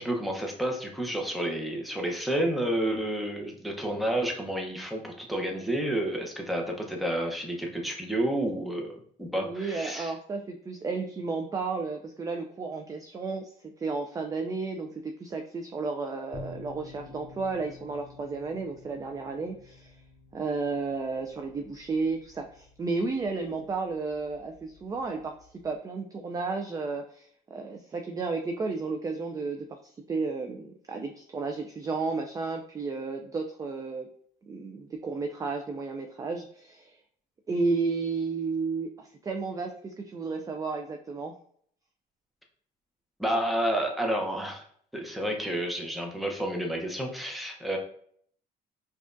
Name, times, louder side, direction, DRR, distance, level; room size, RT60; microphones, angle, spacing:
voice 1, 0.0-10.1 43.2-44.6 44.9-47.8, right 1 dB, ahead, 1 dB, 0.8 m, -30 dB
voice 2, 9.3-20.0 20.3-25.3 25.6-29.8 30.1-34.1 34.5-37.0 37.5-41.3, right 4 dB, 20° right, 4 dB, 0.3 m, -33 dB
sound 1, 16.3-25.7, left 3 dB, 35° left, 1.0 m, -51 dB
4.9 x 2.3 x 2.5 m, 0.62 s
cardioid pair, 110°, 17 cm